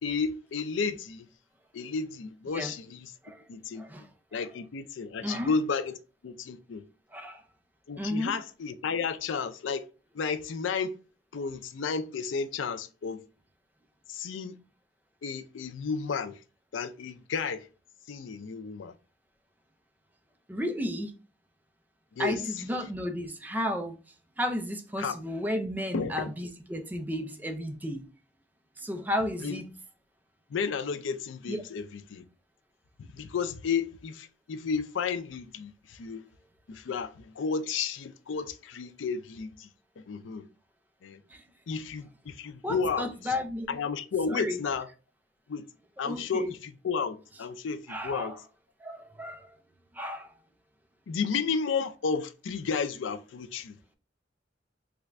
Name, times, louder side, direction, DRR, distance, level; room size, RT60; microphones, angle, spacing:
voice 1, 0.0-1.3 1.7-3.1 3.5-3.9 4.3-6.0 6.2-6.8 7.9-9.9 10.1-11.0 11.3-13.2 14.1-14.6 15.2-16.4 16.7-17.7 18.1-18.9 22.2-22.6 25.0-25.2 25.9-26.3 29.4-29.6 30.5-32.2 33.0-36.2 36.7-39.7 40.0-40.5 41.0-41.2 41.7-43.3 43.7-44.9 45.5-45.6 46.0-48.4 51.1-54.0, left 5 dB, 85° left, 0.4 m, -32 dB
voice 2, 5.2-5.5 7.1-7.4 8.0-8.3 20.5-21.1 22.2-24.0 24.4-28.1 28.8-29.7 31.5-31.6 41.3-41.4 42.6-43.7 44.3-44.6 46.0-46.5 47.9-48.4 48.8-49.5 49.9-50.3, left 1 dB, 10° right, 0.4 m, -33 dB
3.3 x 2.5 x 3.1 m
head